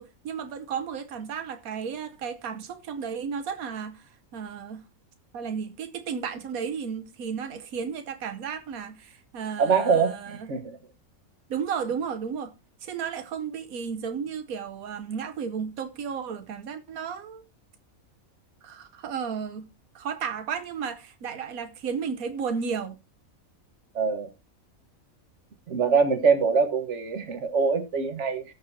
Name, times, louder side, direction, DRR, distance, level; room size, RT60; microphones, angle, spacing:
voice 1, 0.0-4.8 5.3-10.5 11.5-12.5 12.8-17.4 18.6-19.7 19.9-23.0, right 6 dB, 90° right, 1.3 m, -33 dB
voice 2, 9.6-10.8 24.0-24.3 25.7-28.4, right 5 dB, 55° right, 1.8 m, -24 dB
17.5 x 6.5 x 2.8 m
omnidirectional pair, 1.5 m